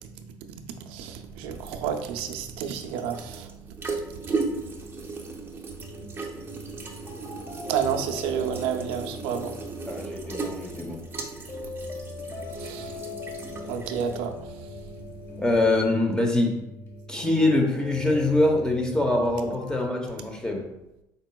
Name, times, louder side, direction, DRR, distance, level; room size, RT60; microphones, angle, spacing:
voice 1, 0.0-3.6 4.3-4.4 7.7-9.6 12.5-13.1 13.7-14.9, right 8 dB, 85° right, 0.5 m, -31 dB
sound 1, 0.9-16.0, right 4 dB, 25° right, 0.7 m, -37 dB
sound 2, 5.8-19.8, left 2 dB, 30° left, 1.2 m, -41 dB
voice 2, 9.9-11.0 15.4-16.6 17.1-20.6, left 2 dB, 10° left, 0.8 m, -24 dB
5.1 x 4.1 x 2.2 m
cardioid pair, 100°, 9 cm